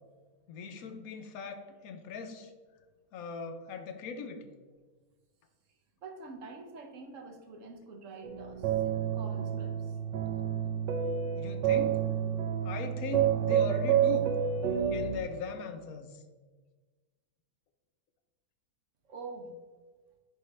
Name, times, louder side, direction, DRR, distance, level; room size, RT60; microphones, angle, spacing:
voice 1, 0.5-2.5 3.1-4.5 11.4-12.1 12.6-14.4 14.9-16.2, left 5 dB, 65° left, 6 dB, 1.0 m, -40 dB
voice 2, 6.0-10.0 19.0-19.6, right 3 dB, 55° right, 4 dB, 1.0 m, -46 dB
sound 1, 8.2-15.2, right 8 dB, 85° right, 1.3 m, -29 dB
10.5 x 3.7 x 3.2 m, 1.4 s
omnidirectional pair, 1.9 m